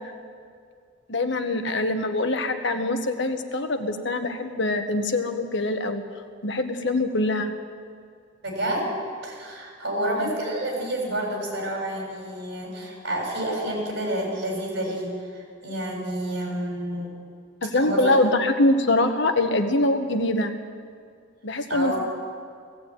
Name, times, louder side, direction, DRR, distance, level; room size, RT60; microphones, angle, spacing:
voice 1, 1.1-6.0 6.4-7.5 10.0-10.3 17.6-20.5 21.4-21.9, left 2 dB, 65° left, 7 dB, 1.5 m, -24 dB
voice 2, 8.4-8.9 9.2-17.1 17.7-18.2 21.7-22.0, right 1 dB, 60° right, -1 dB, 7.2 m, -29 dB
17.5 x 16.5 x 9.2 m, 2.2 s
head